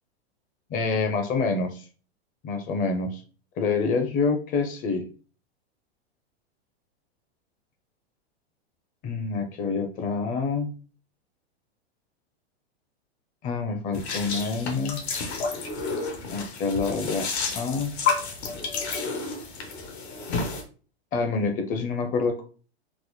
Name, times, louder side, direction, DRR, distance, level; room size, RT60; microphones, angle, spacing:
voice 1, 0.7-1.8 2.4-3.2 3.6-5.0 9.0-10.7 13.4-15.0 16.3-17.3 17.5-17.9 21.1-22.4, left 4 dB, 25° left, 6 dB, 0.5 m, -27 dB
sound 1, 13.9-20.6, left 4 dB, 80° left, 1.1 m, -30 dB
3.9 x 2.1 x 2.9 m, 0.37 s
hypercardioid pair, 120°, 32 cm